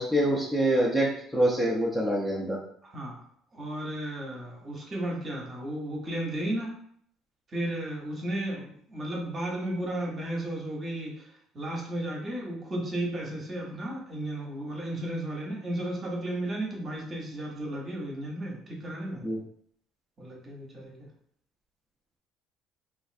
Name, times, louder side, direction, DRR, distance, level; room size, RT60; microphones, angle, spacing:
voice 1, 0.0-2.6 19.2-19.4, right 1 dB, 5° left, -4 dB, 0.5 m, -25 dB
voice 2, 2.8-3.2 3.5-6.7 7.5-11.3 11.5-19.3 20.2-20.9, right 1 dB, 30° right, -1 dB, 0.8 m, -34 dB
3.0 x 2.5 x 2.5 m, 0.63 s
cardioid pair, 130°, 0 cm